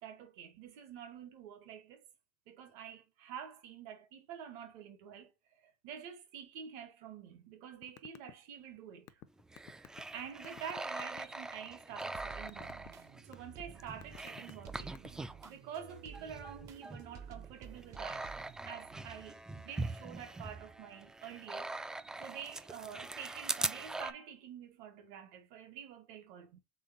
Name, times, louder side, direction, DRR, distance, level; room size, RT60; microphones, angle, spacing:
voice 1, 0.0-2.0 2.5-9.2 9.8-9.9 10.1-12.9 13.3-18.3 18.6-26.6, right 8 dB, 70° right, 1.3 m, -48 dB
sound 1, 7.8-8.3 8.6-11.2 11.7-12.2 12.5-12.9 13.3-13.6 14.0-15.3, left 13 dB, 50° left, 0.5 m, -51 dB
sound 2, 9.4-15.5 15.9-24.1, right 2 dB, 10° right, 0.3 m, -42 dB
sound 3, 11.9-19.3 19.8-20.7 21.3-21.4 21.8-22.8, right 7 dB, 50° right, 0.8 m, -53 dB
3.8 x 3.4 x 3.8 m
supercardioid pair, 115°, 7 cm